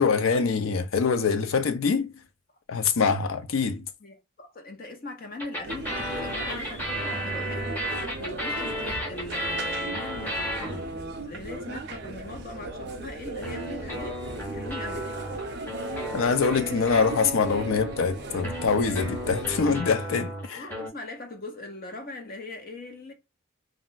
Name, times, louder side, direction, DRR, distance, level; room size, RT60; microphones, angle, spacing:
voice 1, 0.0-2.1 2.7-3.9 16.1-20.7, left 5 dB, 75° left, 0.4 m, -24 dB
voice 2, 4.0-15.1 20.5-23.1, left 2 dB, 45° left, 0.7 m, -41 dB
sound 1, 5.4-11.1 13.4-20.9, equal, 10° left, 0.7 m, -34 dB
sound 2, 5.6-19.8, right 2 dB, 50° right, 0.5 m, -38 dB
2.4 x 2.0 x 3.7 m
head